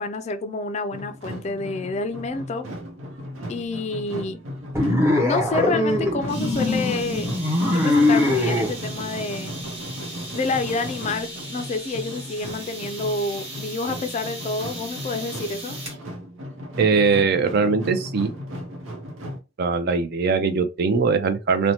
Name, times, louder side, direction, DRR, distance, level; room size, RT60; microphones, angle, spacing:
voice 1, 0.0-2.7 3.5-4.4 5.2-7.3 7.7-9.5 10.3-15.8, left 3 dB, 35° left, 0.3 m, -28 dB
sound 1, 0.9-19.4, equal, 90° right, 0.7 m, -36 dB
sound 2, 4.7-8.7, left 2 dB, 15° right, 0.7 m, -21 dB
sound 3, 6.3-16.0, right 1 dB, 30° right, 1.2 m, -38 dB
voice 2, 16.8-18.3 19.6-21.7, right 4 dB, 50° right, 0.4 m, -21 dB
2.7 x 2.1 x 2.8 m
head